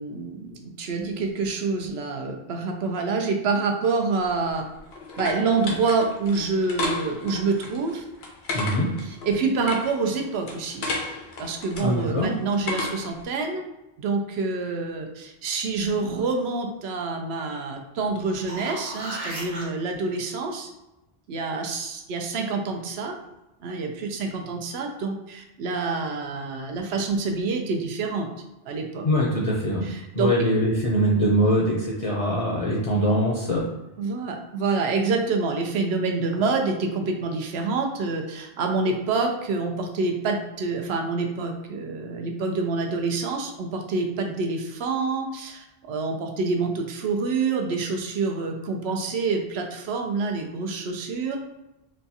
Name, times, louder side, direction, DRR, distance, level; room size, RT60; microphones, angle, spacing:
voice 1, 0.0-4.6 5.2-8.0 9.0-11.0 11.4-13.6 14.0-20.7 21.3-23.1 23.6-28.3 28.7-29.1 29.8-30.3 34.0-51.4, right 4 dB, 85° right, 3 dB, 0.9 m, -27 dB
sound 1, 4.2-13.2, left 2 dB, 85° left, 0.9 m, -34 dB
voice 2, 8.5-8.9 11.8-12.3 29.0-29.9 30.1-33.6, equal, 45° left, -4 dB, 0.5 m, -22 dB
sound 2, 18.2-19.6 24.4-24.5, right 1 dB, 40° right, 0.8 m, -35 dB
4.1 x 2.3 x 2.7 m, 0.95 s
omnidirectional pair, 1.0 m